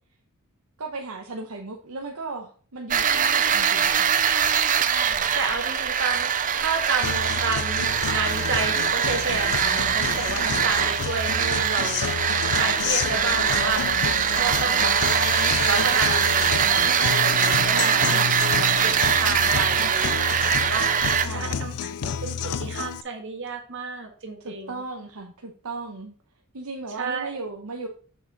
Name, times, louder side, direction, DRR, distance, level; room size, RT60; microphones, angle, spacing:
voice 1, 0.8-4.1 10.4-10.6 14.3-14.5 17.7-18.5 21.2-21.8 24.4-26.1 26.5-27.9, right 3 dB, 75° right, 2 dB, 0.9 m, -36 dB
sound 1, 2.9-21.3, right 8 dB, 35° right, 0.5 m, -23 dB
voice 2, 5.3-6.3 6.6-14.1 14.4-14.9 15.6-18.3 18.6-24.8 27.0-27.4, right 4 dB, 55° right, 3 dB, 1.7 m, -31 dB
Guitar, 7.0-23.0, left 7 dB, 85° left, 0.5 m, -30 dB
6.8 x 6.3 x 4.0 m, 0.43 s
head